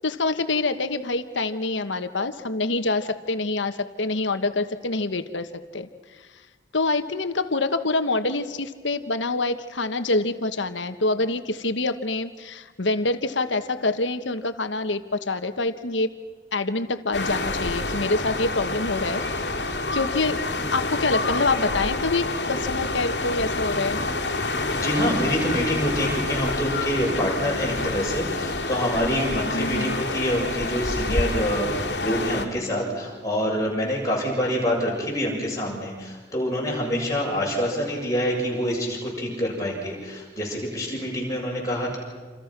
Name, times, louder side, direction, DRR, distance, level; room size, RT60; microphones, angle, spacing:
voice 1, 0.0-5.5 5.7-5.9 6.7-16.1 16.5-19.2 19.9-20.4 20.7-24.0 29.5-30.0, left 3 dB, 80° left, 9 dB, 1.3 m, -26 dB
sound 1, 17.1-32.5, left 2 dB, 65° left, 2.4 m, -28 dB
voice 2, 24.7-42.0, equal, 20° left, -3 dB, 7.5 m, -26 dB
28.0 x 28.0 x 6.1 m, 1.5 s
head